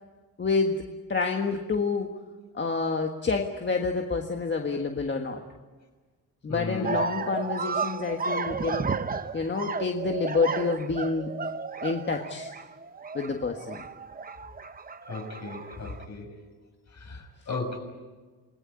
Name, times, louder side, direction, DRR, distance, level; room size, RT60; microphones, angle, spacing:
voice 1, 0.4-0.8 1.1-2.1 2.5-5.4 6.4-8.9 9.3-11.3 11.8-12.5 13.1-13.8, left 4 dB, 30° left, 3 dB, 1.6 m, -28 dB
voice 2, 6.5-7.0 15.1-16.3 17.0-17.8, left 3 dB, 50° left, 3 dB, 6.3 m, -36 dB
sound 1, 6.8-16.0, right 5 dB, 25° right, 0.8 m, -33 dB
29.0 x 19.5 x 9.7 m, 1.3 s
wide cardioid pair, 150°, 36 cm